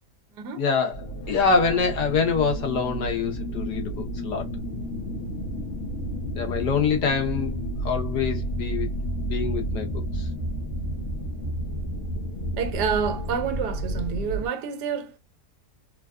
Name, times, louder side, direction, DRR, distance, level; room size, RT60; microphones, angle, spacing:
voice 1, 0.5-4.4 6.3-7.5 7.8-8.9 9.3-10.3 13.9-14.0, left 5 dB, 85° left, 1.7 m, -25 dB
sound 1, 0.9-14.5, right 1 dB, 55° left, 1.1 m, -31 dB
voice 2, 12.6-15.2, right 6 dB, 80° right, 1.3 m, -28 dB
3.8 x 2.5 x 2.2 m
omnidirectional pair, 1.7 m